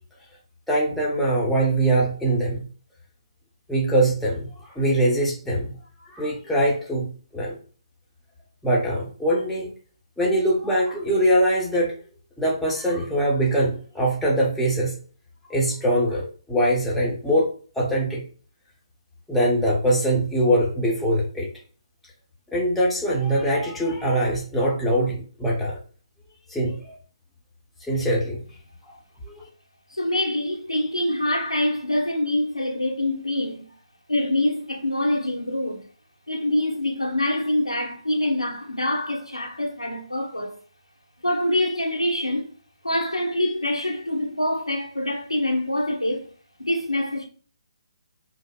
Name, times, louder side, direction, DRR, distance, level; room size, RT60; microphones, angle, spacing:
voice 1, 0.7-2.7 3.7-5.7 6.1-7.6 8.6-9.7 10.2-11.9 12.4-15.0 15.5-17.5 17.8-18.2 19.3-21.5 22.5-25.8 26.5-27.0 27.8-28.4 28.9-29.0 29.2-29.4, right 1 dB, ahead, 0.8 m, -22 dB
voice 2, 29.9-33.7 34.1-35.8 36.3-40.5 41.2-42.5 42.8-46.3 46.6-47.3, left 1 dB, 90° left, 1.0 m, -25 dB
5.0 x 2.0 x 2.3 m
figure-of-eight pair, 140°, 3 cm